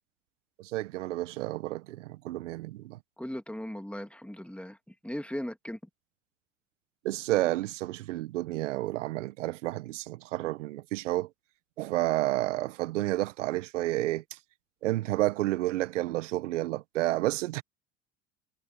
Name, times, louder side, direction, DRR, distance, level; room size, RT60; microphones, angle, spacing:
voice 1, 0.6-3.0 7.0-11.3 11.8-14.4 14.8-17.6, right 16 dB, 80° right, 1.1 m, -30 dB
voice 2, 3.2-5.8, left 1 dB, 5° left, 2.3 m, -38 dB
hypercardioid pair, 65°, 36 cm